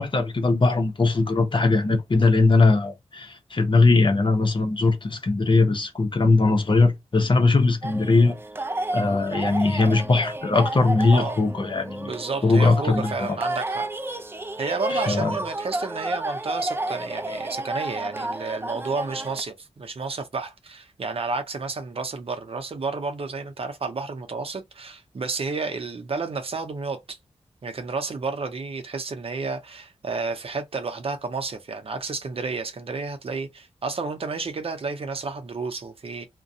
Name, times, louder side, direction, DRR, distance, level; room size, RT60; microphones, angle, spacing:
voice 1, 0.0-8.4 8.9-12.1 12.4-13.4 14.9-15.3, left 3 dB, 45° left, 0.8 m, -20 dB
sound 1, 7.8-19.4, right 2 dB, 20° right, 0.4 m, -31 dB
voice 2, 12.0-13.9 14.6-27.2 27.6-36.3, right 4 dB, 55° right, 0.7 m, -31 dB
2.4 x 2.2 x 2.7 m
cardioid pair, 50°, 12 cm